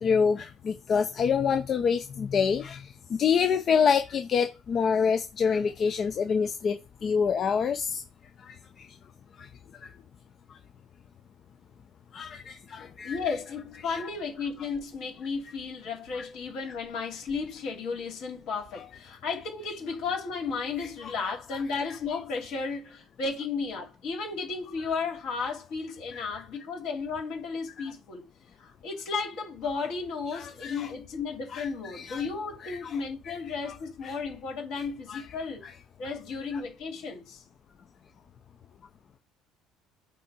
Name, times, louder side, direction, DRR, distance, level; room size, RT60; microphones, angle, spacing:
voice 1, 0.0-8.0 8.4-9.0 9.4-9.5 9.8-9.9 10.5-10.6 12.1-13.3 13.8-14.0 16.1-16.3 16.7-16.8 18.7-18.9 20.8-21.1 21.5-22.0 26.1-26.4 27.8-27.9 30.3-30.9 31.5-32.2 32.6-33.0 33.3-33.4 33.6-33.8 34.0-34.2 35.1-35.2 35.6-35.7 36.5-36.6, left 6 dB, 40° left, 0.5 m, -28 dB
voice 2, 13.0-28.3 28.6-35.6 36.0-37.4, left 4 dB, 70° left, 3.0 m, -34 dB
8.2 x 2.8 x 4.2 m
cardioid pair, 105°, 0 cm